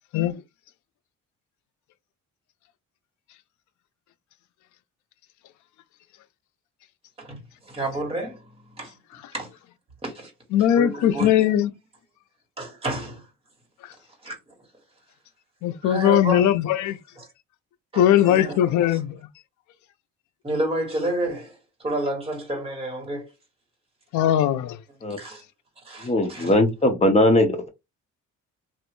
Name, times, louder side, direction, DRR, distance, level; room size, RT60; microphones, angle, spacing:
voice 1, 7.2-9.0 9.3-9.5 10.0-10.3 10.8-11.5 12.6-13.3 14.2-14.4 15.8-16.5 17.2-17.3 17.9-18.6 18.9-19.0 20.4-23.3 25.1-25.4 25.8-26.5, right 1 dB, 20° right, 1.6 m, -30 dB
voice 2, 10.5-11.7 15.6-17.0 18.0-19.2 24.1-24.8, left 11 dB, 75° left, 0.5 m, -20 dB
voice 3, 26.0-27.7, left 1 dB, 20° left, 0.9 m, -20 dB
3.1 x 2.5 x 3.1 m
cardioid pair, 130°, 30 cm